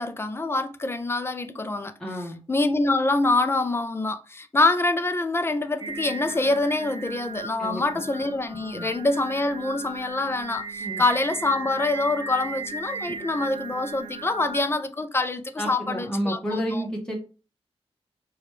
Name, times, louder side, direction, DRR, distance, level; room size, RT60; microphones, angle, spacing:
voice 1, 0.0-1.9 2.5-16.8, left 2 dB, 20° left, 0.4 m, -25 dB
voice 2, 2.0-2.4 7.6-8.1 8.7-8.9 10.8-11.0 15.6-17.1, equal, 5° left, 1.0 m, -30 dB
Singing, 5.8-14.6, right 3 dB, 50° right, 0.5 m, -37 dB
4.8 x 2.3 x 3.1 m
wide cardioid pair, 120°, 11 cm